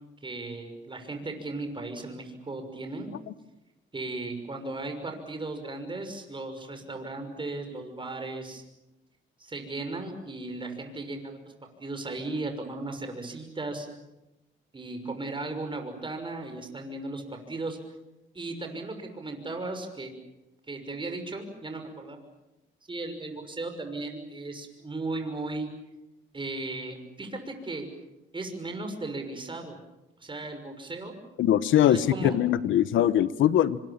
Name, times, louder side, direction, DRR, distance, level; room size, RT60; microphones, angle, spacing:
voice 1, 0.2-3.1 3.9-8.6 9.4-11.5 11.8-13.9 14.7-17.8 18.3-20.1 20.7-22.2 22.9-25.7 26.3-27.9 28.3-29.8 30.2-31.1 31.7-32.3, right 2 dB, 25° right, 6 dB, 6.1 m, -36 dB
voice 2, 31.4-33.8, left 11 dB, 75° left, 16 dB, 1.1 m, -22 dB
27.0 x 25.5 x 7.4 m, 0.97 s
cardioid pair, 90°, 20 cm